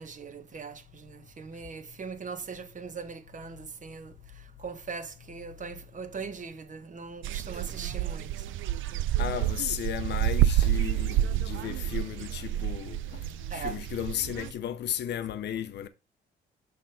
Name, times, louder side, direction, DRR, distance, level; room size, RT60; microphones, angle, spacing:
voice 1, 0.0-8.5 12.5-12.6 13.5-13.8, right 5 dB, 40° right, 1.2 m, -40 dB
sound 1, 7.2-14.5, right 12 dB, 80° right, 0.4 m, -29 dB
voice 2, 9.2-13.2 13.5-15.9, left 10 dB, 60° left, 0.7 m, -34 dB
6.3 x 3.4 x 5.7 m
cardioid pair, 90°, 20 cm